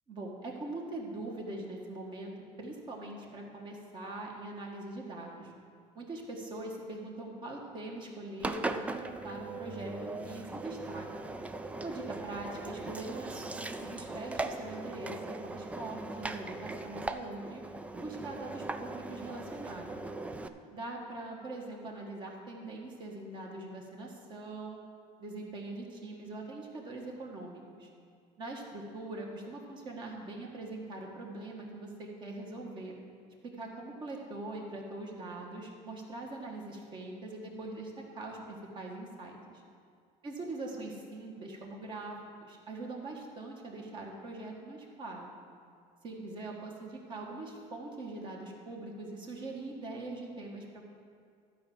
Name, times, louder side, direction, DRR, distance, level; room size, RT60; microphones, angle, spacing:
voice 1, 0.1-2.3 2.6-5.5 5.9-11.3 11.8-15.2 15.4-17.6 17.9-20.0 20.7-24.8 25.2-27.9 28.4-33.0 33.4-39.6 40.2-45.3 46.0-50.8, right 2 dB, 30° right, 0 dB, 1.5 m, -42 dB
Engine, 8.4-20.5, right 2 dB, 10° right, 0.3 m, -39 dB
12.5 x 5.1 x 7.5 m, 2.2 s
cardioid pair, 155°, 15 cm